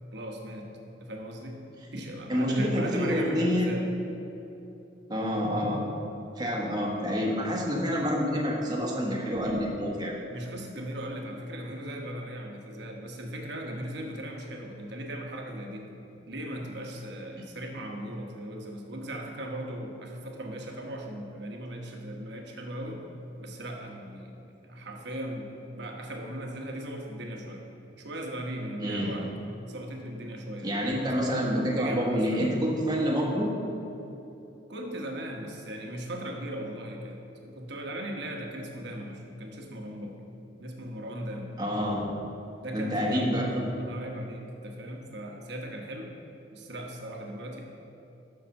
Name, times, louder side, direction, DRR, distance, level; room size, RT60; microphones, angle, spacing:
voice 1, 0.1-0.7 1.0-1.6 1.9-3.9 10.3-15.9 16.3-23.0 23.4-24.3 24.6-27.6 28.0-29.3 29.7-30.9 31.8-32.6 34.7-40.2 40.6-41.6 42.6-43.3 43.8-46.1 46.5-47.6, right 1 dB, 60° right, 1 dB, 1.1 m, -38 dB
voice 2, 2.3-3.7 5.1-5.8 6.4-10.1 17.3-17.4 28.8-29.1 30.6-33.5 41.6-42.1 42.7-43.6, equal, 20° right, -3 dB, 1.3 m, -27 dB
6.9 x 5.8 x 6.5 m, 2.9 s
head